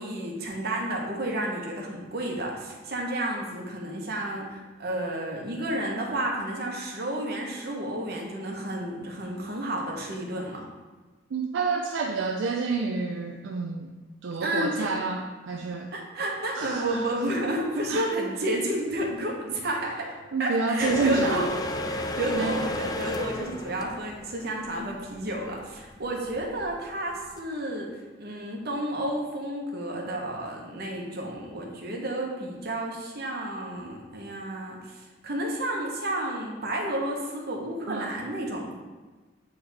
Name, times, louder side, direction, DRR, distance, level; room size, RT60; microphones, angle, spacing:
voice 1, 0.0-10.7 14.4-14.9 15.9-20.1 20.4-21.5 21.9-38.7, right 1 dB, 60° right, 0 dB, 1.1 m, -31 dB
voice 2, 11.3-13.9 14.2-15.9 16.5-17.0 17.9-18.1 20.3-21.4 22.3-22.6 37.9-38.1, right 4 dB, 75° right, 2 dB, 0.4 m, -28 dB
sound 1, 20.8-27.4, left 1 dB, 20° left, 0.3 m, -33 dB
7.9 x 3.5 x 3.4 m, 1.3 s
head